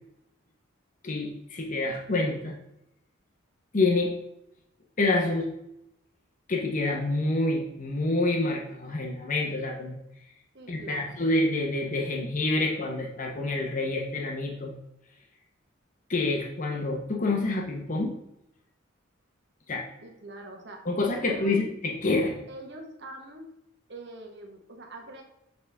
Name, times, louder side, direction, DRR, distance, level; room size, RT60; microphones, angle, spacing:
voice 1, 1.0-2.5 3.7-4.1 5.0-5.5 6.5-10.0 10.7-14.7 16.1-18.1 19.7-19.9 20.9-22.4, left 2 dB, 40° left, 1 dB, 0.8 m, -27 dB
voice 2, 10.5-11.2 20.0-20.8 21.2-21.7 22.5-23.5 23.9-25.2, right 2 dB, 55° right, 2 dB, 1.2 m, -43 dB
6.8 x 4.1 x 3.4 m, 0.82 s
head